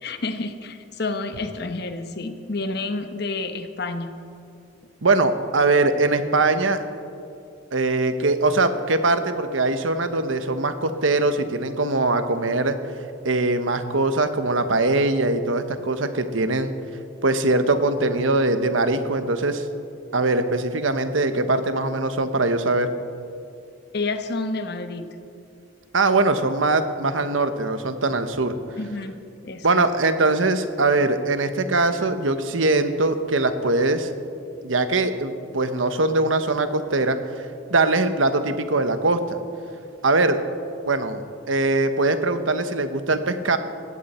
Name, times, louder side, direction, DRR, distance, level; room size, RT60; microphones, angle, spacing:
voice 1, 0.0-4.1 23.9-25.1 28.8-29.9, left 3 dB, 55° left, 8 dB, 1.1 m, -29 dB
voice 2, 5.0-6.8 7.7-12.8 13.2-16.7 17.2-19.6 20.1-22.9 25.9-28.6 29.6-34.1 34.6-37.2 37.7-39.4 40.0-40.4 40.9-43.6, right 2 dB, 80° right, 9 dB, 1.1 m, -22 dB
19.5 x 16.0 x 4.4 m, 2.5 s
head